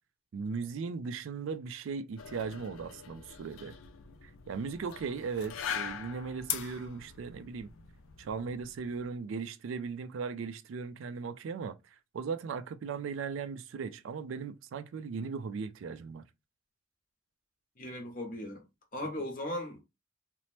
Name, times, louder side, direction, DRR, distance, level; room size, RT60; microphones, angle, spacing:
voice 1, 0.3-3.8 4.2-7.7 8.2-16.2, right 5 dB, 75° right, 0.3 m, -38 dB
sound 1, 2.2-9.1, left 8 dB, 85° left, 0.4 m, -42 dB
voice 2, 17.8-18.6 18.9-19.8, left 1 dB, 45° left, 0.8 m, -37 dB
2.9 x 2.0 x 3.0 m
head